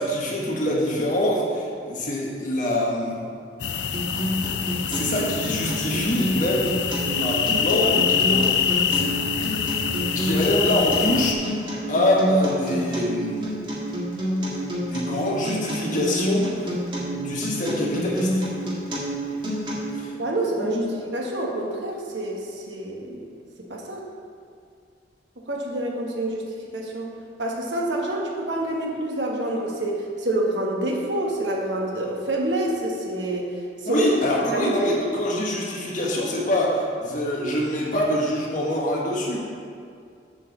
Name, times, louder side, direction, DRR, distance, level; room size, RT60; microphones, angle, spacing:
voice 1, 0.0-3.2 4.9-6.7 7.1-9.2 10.1-11.6 11.9-13.6 14.8-16.7 17.1-18.4 20.0-20.1 20.6-20.9 33.8-39.4, left 1 dB, 45° left, -4 dB, 1.6 m, -25 dB
sound 1, 3.6-11.3, left 7 dB, 75° left, 0.5 m, -25 dB
Acoustic guitar, 3.9-19.9, equal, 25° right, 1.9 m, -28 dB
voice 2, 20.2-20.8 21.1-23.2 23.7-24.0 25.4-26.4 26.7-27.1 27.4-33.5 33.8-34.1 34.5-35.0, right 1 dB, 85° right, -1 dB, 1.4 m, -27 dB
7.4 x 4.7 x 7.1 m, 2.3 s
head